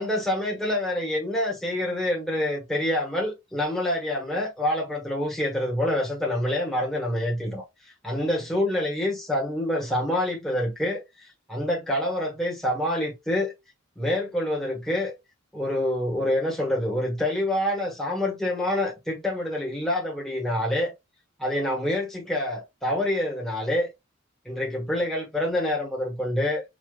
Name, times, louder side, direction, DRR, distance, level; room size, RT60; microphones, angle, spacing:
voice 1, 0.0-7.6 8.0-13.5 14.0-15.1 15.5-20.9 21.4-23.9 24.4-26.6, left 1 dB, ahead, 1.4 m, -26 dB
5.0 x 2.9 x 2.4 m
head